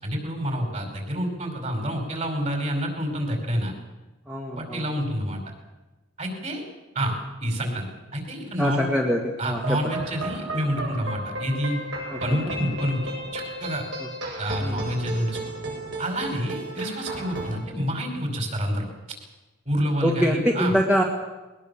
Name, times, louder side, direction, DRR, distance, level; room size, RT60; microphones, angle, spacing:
voice 1, 0.0-3.7 4.5-5.4 6.2-6.6 6.9-7.1 7.4-8.9 9.4-11.8 12.2-13.8 14.4-15.4 16.0-18.9 19.6-20.7, equal, 35° right, 4 dB, 5.2 m, -28 dB
voice 2, 4.3-4.9 8.6-9.2 9.5-9.6 12.1-12.5 14.6-14.8 20.0-21.0, equal, 5° right, -1 dB, 1.8 m, -24 dB
sound 1, 9.5-17.6, right 1 dB, 60° right, 7.5 m, -34 dB
21.0 x 20.5 x 7.2 m, 1.1 s
head